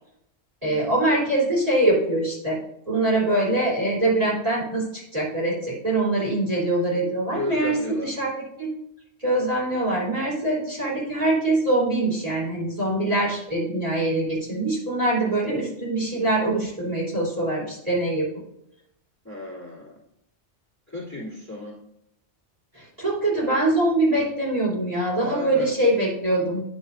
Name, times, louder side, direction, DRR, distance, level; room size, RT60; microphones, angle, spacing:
voice 1, 0.6-2.6 2.9-8.3 8.6-8.7 9.2-18.3 22.7-26.6, right 1 dB, 35° right, -5 dB, 3.5 m, -23 dB
voice 2, 7.3-8.1 19.2-20.0 20.9-21.8 25.2-25.7, left 2 dB, 15° left, -8 dB, 2.7 m, -34 dB
9.7 x 7.0 x 2.6 m, 0.76 s
omnidirectional pair, 1.1 m